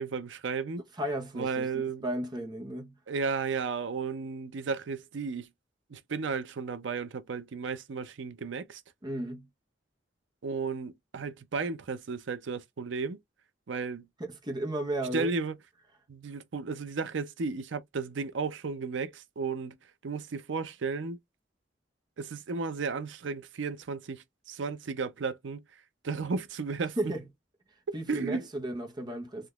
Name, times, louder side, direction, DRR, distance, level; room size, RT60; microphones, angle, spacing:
voice 1, 0.0-0.8 1.3-2.0 3.1-5.5 5.9-8.8 10.4-13.2 13.7-14.0 15.1-15.5 16.1-19.8 20.0-21.2 22.2-25.6 26.0-27.0 27.9-28.5, right 4 dB, 90° right, 0.5 m, -34 dB
voice 2, 1.0-3.0 9.0-9.5 14.2-15.3 27.0-27.2 27.9-29.5, right 1 dB, 25° right, 0.8 m, -34 dB
3.5 x 2.8 x 2.3 m
head